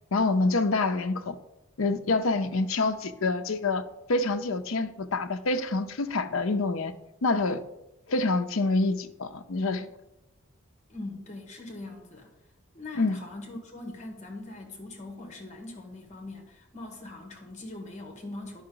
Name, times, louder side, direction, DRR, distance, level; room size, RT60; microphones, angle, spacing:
voice 1, 0.1-1.4 1.8-3.8 4.1-6.9 7.2-7.6 8.1-9.9 13.0-13.2, left 3 dB, 70° left, 0.6 m, -26 dB
voice 2, 10.9-12.3 12.7-18.6, left 2 dB, 35° left, 1.4 m, -41 dB
10.5 x 5.6 x 3.9 m
head